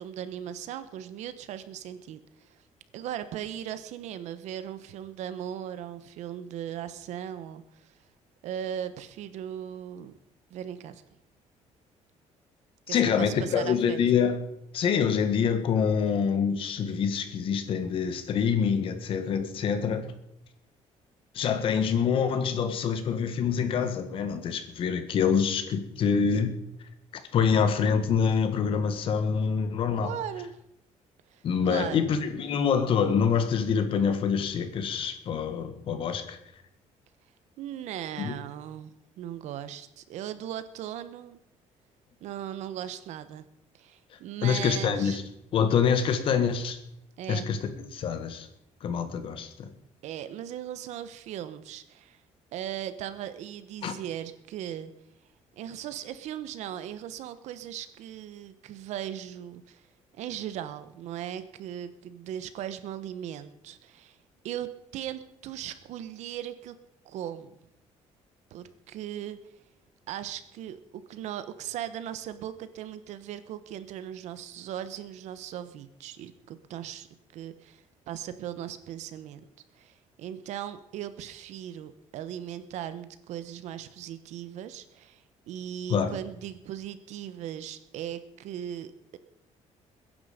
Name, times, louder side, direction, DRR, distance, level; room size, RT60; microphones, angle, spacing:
voice 1, 0.0-2.2 2.9-7.9 8.4-10.1 10.5-11.0 12.9-14.0 30.0-30.6 31.3-31.4 31.7-32.0 37.6-41.4 42.2-43.5 43.7-45.2 47.2-47.6 50.0-52.2 52.5-54.9 55.6-59.8 60.2-64.2 64.4-66.7 67.0-67.5 68.5-69.4 70.1-77.1 77.3-79.4 79.8-89.2, right 10 dB, 70° right, 13 dB, 1.3 m, -38 dB
voice 2, 12.9-14.4 14.7-20.1 21.3-26.6 27.3-30.1 31.4-36.4 38.2-38.4 44.4-45.2 45.5-46.8 47.3-48.5 48.8-49.7 53.8-53.9 85.9-86.1, left 6 dB, 45° left, 9 dB, 1.7 m, -26 dB
22.0 x 10.5 x 5.2 m, 0.80 s
cardioid pair, 180°, 12 cm